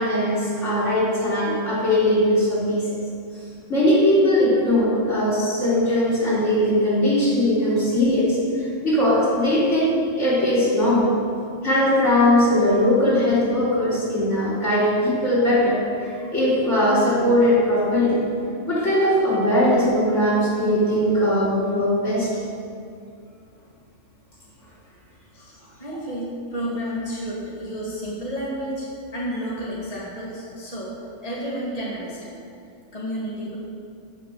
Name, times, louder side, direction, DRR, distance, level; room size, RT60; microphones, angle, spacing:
voice 1, 0.0-3.0 3.7-8.4 8.8-11.1 11.6-18.2 18.7-22.3, left 1 dB, 65° left, -8 dB, 4.3 m, -20 dB
voice 2, 25.8-28.9 29.1-30.9 31.2-32.4 32.9-33.6, equal, 30° left, -6 dB, 2.4 m, -31 dB
16.0 x 6.4 x 6.9 m, 2.4 s
omnidirectional pair, 1.3 m